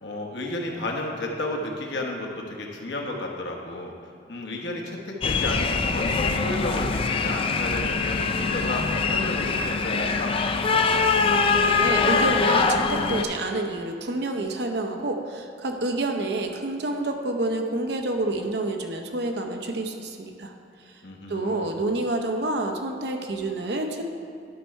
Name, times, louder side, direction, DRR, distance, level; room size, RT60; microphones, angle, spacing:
voice 1, 0.0-3.9 4.3-10.4 21.0-21.8, left 2 dB, 75° left, 0 dB, 1.1 m, -32 dB
sound 1, 5.2-13.2, left 4 dB, 30° left, 0.4 m, -23 dB
voice 2, 11.6-20.5 21.3-24.0, right 2 dB, 70° right, 4 dB, 0.7 m, -28 dB
11.0 x 4.4 x 4.6 m, 2.4 s
head